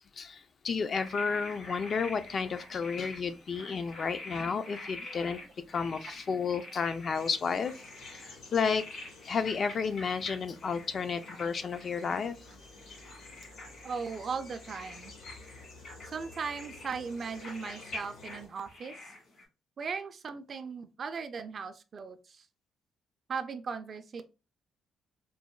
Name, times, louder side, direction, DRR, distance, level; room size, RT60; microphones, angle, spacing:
voice 1, 0.2-5.4 5.7-7.7 8.0-8.8 9.2-12.3 12.6-12.7, left 5 dB, 50° left, 0.3 m, -32 dB
sound 1, 0.9-19.4, left 2 dB, 65° left, 1.4 m, -47 dB
sound 2, 7.1-18.5, left 2 dB, 85° left, 1.4 m, -52 dB
voice 2, 13.8-15.1 16.1-18.9 19.8-22.5 23.3-24.2, right 5 dB, 50° right, 0.4 m, -38 dB
3.9 x 2.1 x 2.2 m
cardioid pair, 90°, 0 cm